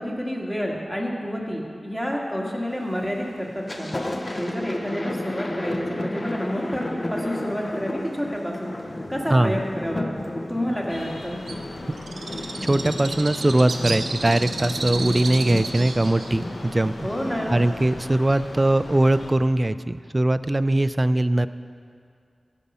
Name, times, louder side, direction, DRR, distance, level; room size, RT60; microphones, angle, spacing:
voice 1, 0.0-3.9 4.3-6.8 7.1-8.7 9.1-10.1 10.5-11.4 17.0-17.6, equal, 5° left, -2 dB, 1.8 m, -29 dB
Thunder, 2.7-3.1 3.5-17.9, left 1 dB, 40° left, 0.9 m, -33 dB
sound 1, 10.9-19.3, left 2 dB, 70° left, 0.9 m, -39 dB
Bird, 11.5-18.7, right 3 dB, 90° right, 0.6 m, -34 dB
voice 2, 12.6-16.9 17.5-21.5, right 1 dB, 25° right, 14 dB, 0.3 m, -21 dB
15.5 x 5.4 x 5.6 m, 2.3 s
wide cardioid pair, 65°, 0 cm